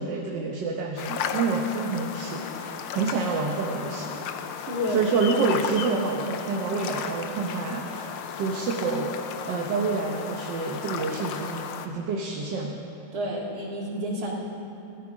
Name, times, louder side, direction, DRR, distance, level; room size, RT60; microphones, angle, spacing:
voice 1, 0.0-4.2 4.9-12.8, right 4 dB, 60° right, 0 dB, 1.6 m, -28 dB
sound 1, 1.0-11.9, left 8 dB, 85° left, 1.6 m, -34 dB
voice 2, 4.7-5.1 13.1-14.3, left 1 dB, 45° right, -3 dB, 2.7 m, -30 dB
17.0 x 14.0 x 5.1 m, 2.8 s
omnidirectional pair, 2.3 m